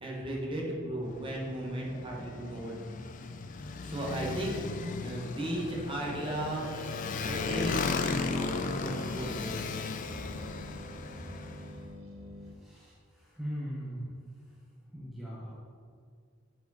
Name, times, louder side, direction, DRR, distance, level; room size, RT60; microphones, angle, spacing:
voice 1, 0.0-2.8 3.8-6.7 7.2-9.6, right 1 dB, 25° right, -3 dB, 1.1 m, -36 dB
Motorcycle, 1.0-11.7, left 4 dB, 40° left, 0.3 m, -36 dB
sound 1, 5.9-12.5, left 1 dB, 80° right, 0.7 m, -46 dB
voice 2, 12.6-14.1 14.9-15.5, equal, ahead, -7 dB, 0.8 m, -39 dB
7.2 x 4.6 x 4.1 m, 2.2 s
head